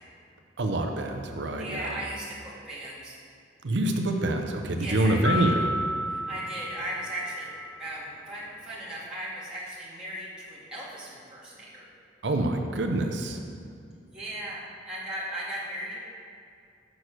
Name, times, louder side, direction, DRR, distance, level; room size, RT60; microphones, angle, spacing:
voice 1, 0.6-2.0 3.6-5.7 12.2-13.4, right 2 dB, 70° right, 4 dB, 0.6 m, -26 dB
voice 2, 1.6-3.2 4.8-5.5 6.1-7.5 7.8-11.9 14.1-16.0, right 1 dB, 5° right, -9 dB, 2.0 m, -37 dB
sound 1, 5.2-7.8, left 1 dB, 15° left, 0.4 m, -32 dB
6.3 x 6.0 x 6.4 m, 2.4 s
head